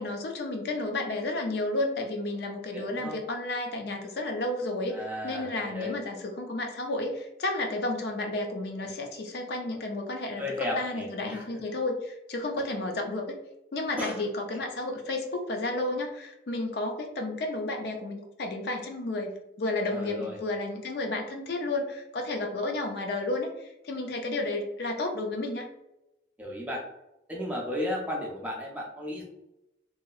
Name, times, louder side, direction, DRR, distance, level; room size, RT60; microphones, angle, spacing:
voice 1, 0.0-13.4 13.7-25.7, left 2 dB, 60° left, 3 dB, 0.4 m, -32 dB
voice 2, 2.7-3.2 4.9-5.9 10.4-11.4 14.0-14.2 19.9-20.4 26.4-26.9 27.3-29.2, left 1 dB, 10° right, -2 dB, 0.4 m, -34 dB
3.0 x 2.7 x 2.3 m, 0.90 s
head